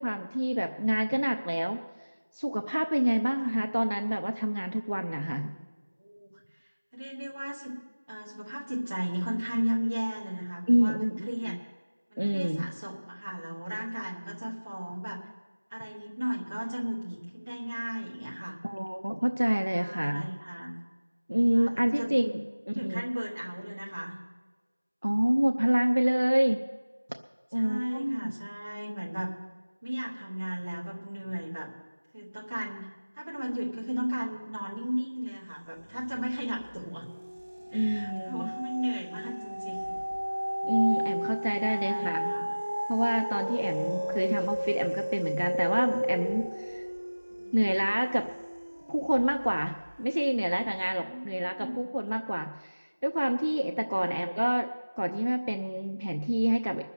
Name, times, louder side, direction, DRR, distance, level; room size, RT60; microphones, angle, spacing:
voice 1, 0.0-1.8 2.4-5.5 10.7-11.6 12.2-12.7 18.6-20.3 21.3-22.4 22.8-23.1 25.0-26.6 27.5-28.3 37.7-38.5 40.6-42.3 42.9-46.9 47.5-48.3 48.9-54.7 55.0-56.8, equal, 35° right, 6 dB, 0.6 m, -27 dB
voice 2, 6.0-6.3 6.6-7.7 8.1-11.6 12.1-15.2 15.7-18.6 19.7-20.8 21.5-22.4 22.7-24.1 27.5-29.3 29.8-31.7 32.1-37.1 37.7-40.0 41.7-42.5 43.6-44.5 47.3-47.8 51.0-51.9 53.6-54.3, equal, 10° right, -6 dB, 1.0 m, -36 dB
sound 1, 35.9-36.4 36.8-49.3 49.8-49.9, equal, 55° right, 1.1 m, -34 dB
20.5 x 6.9 x 8.1 m, 1.4 s
figure-of-eight pair, 180°, 0 cm